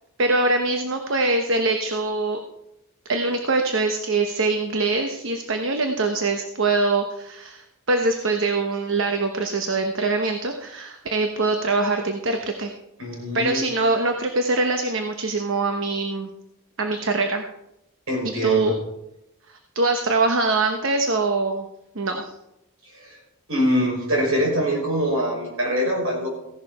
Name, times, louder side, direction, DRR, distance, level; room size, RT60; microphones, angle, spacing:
voice 1, 0.2-2.4 3.1-12.7 13.3-16.3 16.8-17.4 18.2-18.7 19.5-21.6 21.9-22.3, right 3 dB, 60° right, 5 dB, 1.0 m, -23 dB
voice 2, 13.0-13.7 18.1-18.7 22.9-23.2 23.5-26.3, equal, 80° right, -2 dB, 6.1 m, -24 dB
16.0 x 11.0 x 4.2 m, 0.88 s
head